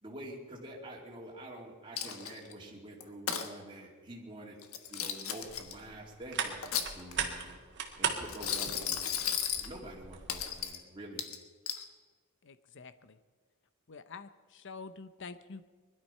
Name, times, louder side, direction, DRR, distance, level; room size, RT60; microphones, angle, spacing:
voice 1, 0.0-4.6 4.9-7.6 8.0-9.2 9.5-11.2, right 1 dB, 25° right, -3 dB, 2.5 m, -47 dB
Coin (dropping), 2.0-2.5 3.0-3.5 4.6-5.7 6.4-7.3 8.3-9.7 10.3-10.8 11.2-11.8, left 8 dB, 85° left, 1.4 m, -35 dB
sound 1, 5.4-10.6, right 6 dB, 60° right, 2.0 m, -39 dB
voice 2, 12.4-13.2 13.9-15.7, left 4 dB, 60° left, 12 dB, 0.7 m, -47 dB
21.0 x 12.0 x 5.6 m, 1.4 s
head